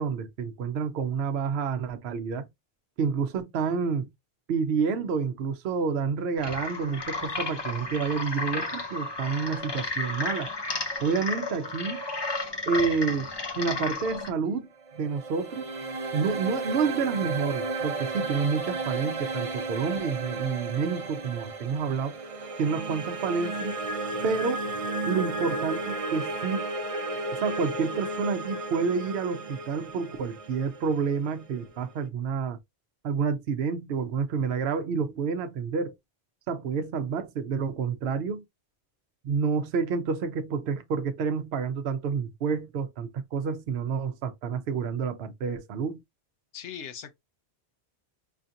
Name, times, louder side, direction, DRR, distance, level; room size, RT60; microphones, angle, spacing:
voice 1, 0.0-2.5 3.0-4.1 4.5-10.5 11.0-12.0 12.7-13.3 13.6-14.7 14.9-15.7 16.1-22.2 22.6-23.8 24.2-24.7 25.1-26.7 27.3-32.6 33.0-35.9 36.5-38.4 39.2-46.0, right 5 dB, 70° right, 0.8 m, -29 dB
sound 1, 6.4-14.3, left 3 dB, 30° left, 0.5 m, -33 dB
sound 2, 14.8-31.9, right 3 dB, 40° right, 0.5 m, -33 dB
voice 2, 46.5-47.2, left 8 dB, 85° left, 1.0 m, -39 dB
4.9 x 2.7 x 2.4 m
omnidirectional pair, 1.2 m